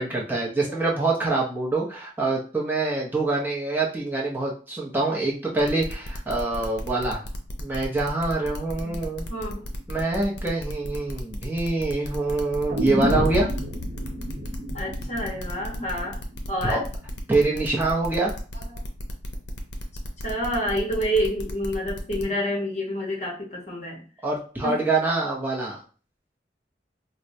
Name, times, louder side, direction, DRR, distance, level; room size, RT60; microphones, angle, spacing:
voice 1, 0.0-7.2 7.6-9.3 9.9-13.5 16.6-16.8 17.3-18.3 24.2-25.8, right 3 dB, 10° right, -3 dB, 0.6 m, -25 dB
sound 1, 5.6-22.2, left 1 dB, 75° left, 0.6 m, -37 dB
voice 2, 9.3-9.6 14.7-16.2 16.5-16.8 20.2-24.0 24.6-24.8, equal, 40° left, -1 dB, 1.0 m, -28 dB
sound 2, 12.7-16.7 17.0-17.1, equal, 65° right, 0.9 m, -30 dB
4.4 x 2.0 x 2.6 m, 0.39 s
head